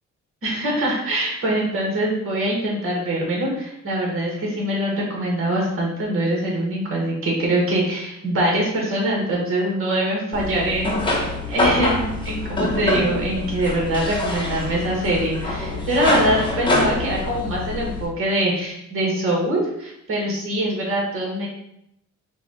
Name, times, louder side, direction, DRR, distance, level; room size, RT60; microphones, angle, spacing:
voice 1, 0.4-21.5, right 1 dB, 45° right, -2 dB, 1.7 m, -23 dB
sound 1, 10.3-18.1, left 2 dB, 15° left, 1.1 m, -25 dB
4.6 x 2.5 x 4.0 m, 0.78 s
cardioid pair, 90°, 30 cm